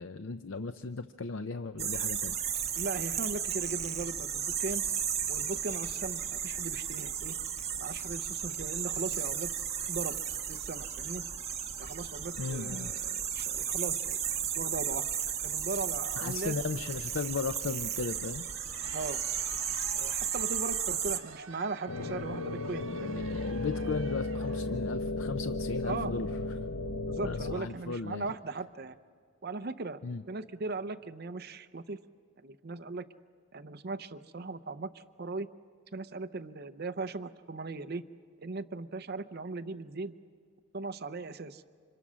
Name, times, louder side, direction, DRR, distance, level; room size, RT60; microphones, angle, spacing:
voice 1, 0.0-2.4 12.4-12.9 16.2-18.4 22.8-26.3 27.2-28.3 30.0-30.2, left 4 dB, 65° left, 10 dB, 0.6 m, -36 dB
sound 1, 1.8-21.2, right 8 dB, 30° right, 1.4 m, -34 dB
voice 2, 2.8-4.8 5.3-7.4 7.8-9.5 9.9-10.2 10.5-11.2 11.8-14.2 14.5-15.0 15.4-16.6 18.9-19.2 19.9-23.2 25.8-26.1 27.1-29.0 29.4-30.0 30.3-32.0 32.4-33.0 33.5-35.5 35.9-38.0 38.4-40.1 40.7-41.6, right 3 dB, 50° right, 12 dB, 0.6 m, -38 dB
Crowd, 18.4-24.8, right 5 dB, 70° right, 1.5 m, -49 dB
sound 2, 21.9-27.6, left 2 dB, 90° left, 0.9 m, -35 dB
29.5 x 26.5 x 6.3 m, 2.1 s
head